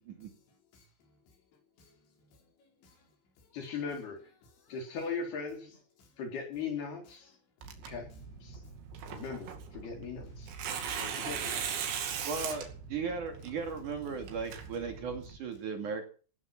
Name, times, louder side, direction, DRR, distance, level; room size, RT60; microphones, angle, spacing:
voice 1, 0.1-3.6 4.4-4.8 6.0-6.2 7.2-7.4 7.8-9.2 10.6-10.8, left 2 dB, 80° left, 6.6 m, -66 dB
voice 2, 3.5-4.2 4.7-5.8 6.2-7.3 7.9-8.1 8.4-8.6 9.1-10.5 11.0-11.6, left 5 dB, 60° left, 6.1 m, -39 dB
Tearing, 7.6-15.4, right 7 dB, 75° right, 4.6 m, -39 dB
voice 3, 12.2-16.0, right 5 dB, 50° right, 3.2 m, -37 dB
16.5 x 13.0 x 5.9 m
omnidirectional pair, 5.1 m